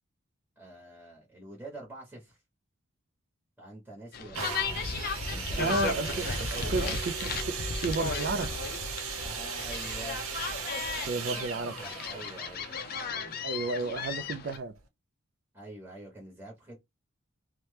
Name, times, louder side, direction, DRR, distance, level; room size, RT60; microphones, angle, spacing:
voice 1, 0.6-2.4 3.6-4.9 5.3-7.0 9.2-10.2 11.3-12.8 15.5-16.8, right 1 dB, 10° right, 0.9 m, -46 dB
sound 1, 4.1-14.6, left 5 dB, 45° left, 0.4 m, -35 dB
sound 2, 4.3-14.0 14.8-14.9, right 6 dB, 80° right, 0.7 m, -38 dB
voice 2, 5.6-8.6 11.1-11.8 12.1-12.5 13.4-14.8, right 3 dB, 50° right, 0.3 m, -33 dB
2.8 x 2.1 x 3.2 m
head